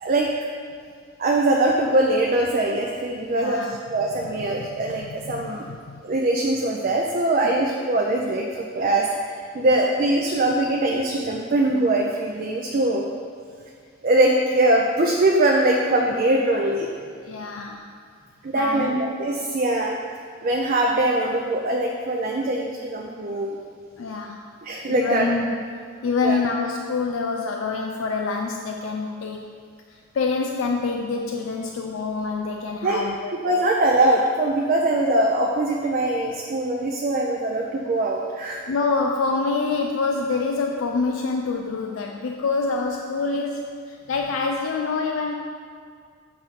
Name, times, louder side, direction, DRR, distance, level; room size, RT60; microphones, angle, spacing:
voice 1, 1.2-5.6 6.0-13.1 14.0-16.9 18.4-20.0 20.4-23.6 24.6-25.3 26.2-26.4 32.8-33.0 33.4-38.6, right 1 dB, 45° right, 0 dB, 0.4 m, -22 dB
voice 2, 3.3-3.8 4.3-6.0 9.6-9.7 17.2-17.9 18.5-18.9 24.0-24.4 24.9-25.6 26.0-29.5 29.9-33.3 38.7-45.3, left 4 dB, 80° left, 2 dB, 0.4 m, -26 dB
7.3 x 2.6 x 5.7 m, 2.1 s
head